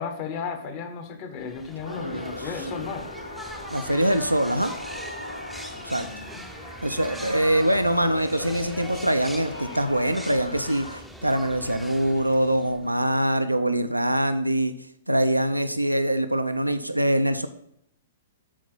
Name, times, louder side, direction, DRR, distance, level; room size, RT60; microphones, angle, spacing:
voice 1, 0.0-3.1 5.7-6.5, left 5 dB, 35° left, 8 dB, 1.3 m, -35 dB
sound 1, 1.4-13.0, equal, ahead, 0.7 m, -41 dB
sound 2, 1.8-11.0, left 1 dB, 80° left, 0.7 m, -38 dB
voice 2, 1.9-2.8 3.7-4.7 5.8-6.1 6.8-10.8 11.2-14.7 15.1-17.5, right 1 dB, 85° right, 9 dB, 0.6 m, -24 dB
12.5 x 4.5 x 4.0 m, 0.72 s
figure-of-eight pair, 110°, 0 cm